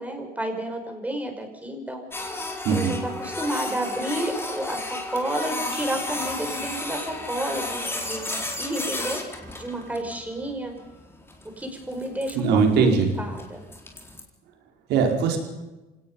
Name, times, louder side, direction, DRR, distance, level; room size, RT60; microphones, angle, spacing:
voice 1, 0.0-2.0 2.7-9.2 9.6-10.7 11.6-12.9 13.2-13.6, right 1 dB, 10° right, 4 dB, 5.5 m, -31 dB
Printer, 2.1-14.2, left 2 dB, 15° left, 4.2 m, -33 dB
voice 2, 12.4-13.1 14.9-15.4, right 5 dB, 85° right, 3 dB, 4.7 m, -20 dB
27.0 x 18.0 x 5.6 m, 1.1 s
cardioid pair, 110°, 17 cm